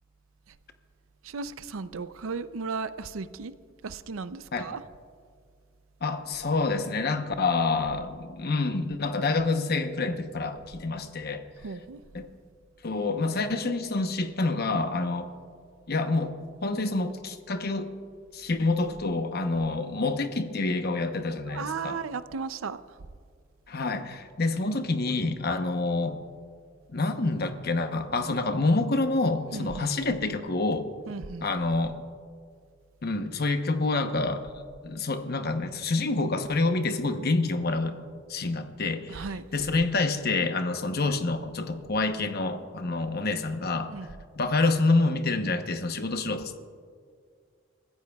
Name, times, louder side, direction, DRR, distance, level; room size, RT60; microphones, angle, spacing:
voice 1, 1.2-3.5 3.8-4.8 11.6-12.0 21.5-22.8 29.5-29.9 31.1-31.5 39.1-39.5 43.9-44.1, right 4 dB, 85° right, 0.5 m, -35 dB
voice 2, 6.0-11.4 12.1-12.3 12.8-15.3 15.9-16.3 16.6-17.9 18.3-22.0 23.7-26.2 26.9-30.9 31.4-32.0 33.0-34.4 34.8-38.0 38.3-39.2 39.5-43.9 44.4-46.6, left 3 dB, 50° left, 0.9 m, -27 dB
29.0 x 15.0 x 2.3 m
head